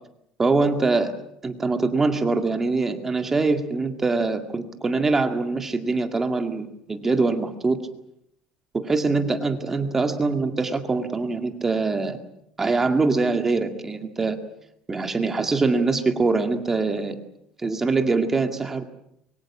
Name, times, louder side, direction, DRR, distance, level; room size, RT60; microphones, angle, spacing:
voice 1, 0.4-1.1 1.4-7.8 8.7-12.2 12.6-14.4 14.9-17.2 17.6-18.8, right 3 dB, 15° right, 7 dB, 2.1 m, -23 dB
25.0 x 23.0 x 7.3 m, 0.75 s
cardioid pair, 155°, 2 cm